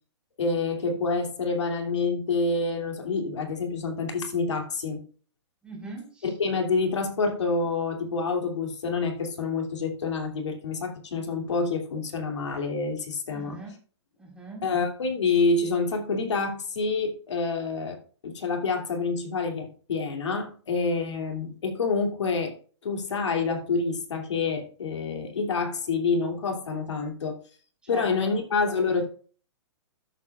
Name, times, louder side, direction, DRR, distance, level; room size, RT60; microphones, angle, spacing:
voice 1, 0.4-5.0 6.2-13.6 14.6-22.5 22.8-27.4 27.9-29.1, left 4 dB, 85° left, 3 dB, 2.6 m, -27 dB
voice 2, 5.6-6.3 13.3-13.7 14.2-14.7 27.9-28.4, right 2 dB, 5° right, -2 dB, 3.6 m, -39 dB
13.5 x 7.4 x 2.4 m, 0.40 s
hypercardioid pair, 145°, 15 cm